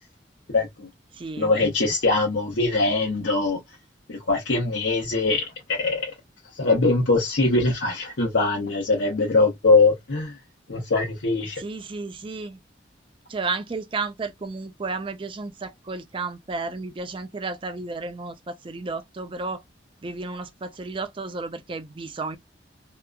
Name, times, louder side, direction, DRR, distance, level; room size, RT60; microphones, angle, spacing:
voice 1, 0.5-0.9 1.4-3.6 4.1-6.1 6.6-10.3 10.7-11.6, left 3 dB, 85° left, 1.0 m, -22 dB
voice 2, 1.1-1.5 11.6-12.6 13.3-19.6 20.0-22.4, right 3 dB, 30° right, 0.4 m, -32 dB
2.8 x 2.4 x 2.2 m
head